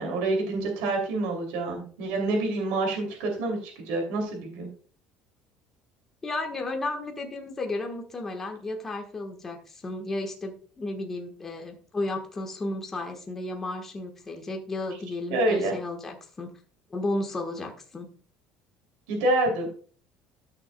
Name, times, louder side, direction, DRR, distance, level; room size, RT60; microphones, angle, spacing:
voice 1, 0.0-4.7 15.3-15.7 19.1-19.7, right 2 dB, 85° right, 2 dB, 2.8 m, -27 dB
voice 2, 6.2-16.6 16.9-18.1, left 2 dB, 15° left, 2 dB, 1.3 m, -33 dB
14.0 x 6.5 x 2.2 m, 0.44 s
cardioid pair, 160°, 2 cm